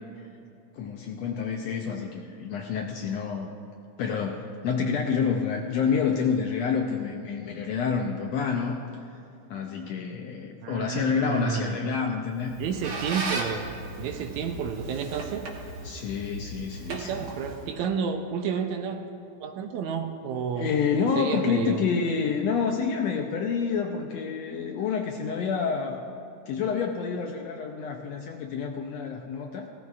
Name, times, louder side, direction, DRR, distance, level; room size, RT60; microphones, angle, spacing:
voice 1, 0.7-3.5 4.0-9.2 9.5-12.5 15.8-17.3 20.6-26.0 26.5-29.7, left 6 dB, 80° left, 3 dB, 1.6 m, -28 dB
voice 2, 10.6-12.0 12.6-13.7 14.0-15.5 16.9-19.1 19.4-20.7 21.2-21.8, right 7 dB, 80° right, 6 dB, 1.8 m, -31 dB
Squeak, 12.3-17.8, right 2 dB, 55° right, 2.0 m, -36 dB
18.0 x 14.0 x 2.4 m, 2.8 s
omnidirectional pair, 3.6 m